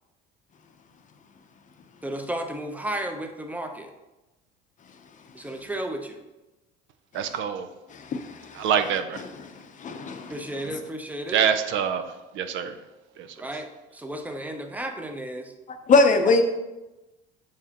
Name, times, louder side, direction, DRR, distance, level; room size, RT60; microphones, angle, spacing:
voice 1, 2.0-3.9 5.3-6.2 10.3-11.4 13.4-13.7 13.9-15.5, right 1 dB, 5° right, 5 dB, 0.7 m, -33 dB
voice 2, 7.1-7.7 8.5-9.2 10.6-10.7 11.3-12.8 13.2-13.4, right 8 dB, 65° right, 9 dB, 0.5 m, -26 dB
voice 3, 7.9-8.6 9.8-10.3 15.9-16.4, left 3 dB, 35° left, 7 dB, 0.6 m, -21 dB
7.0 x 4.7 x 2.9 m, 1.0 s
cardioid pair, 105°, 21 cm